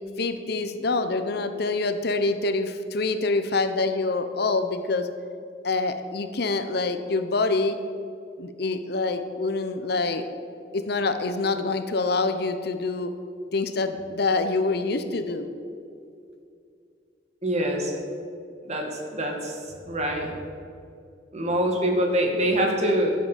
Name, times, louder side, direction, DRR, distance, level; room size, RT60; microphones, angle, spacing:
voice 1, 0.2-5.1 5.6-7.8 8.4-10.2 10.7-13.1 13.5-15.5, left 3 dB, 60° left, 9 dB, 0.9 m, -26 dB
voice 2, 17.4-17.9 18.6-19.6 19.9-20.3 21.3-23.1, right 1 dB, 40° right, 1 dB, 2.1 m, -24 dB
13.0 x 7.8 x 7.4 m, 2.4 s
head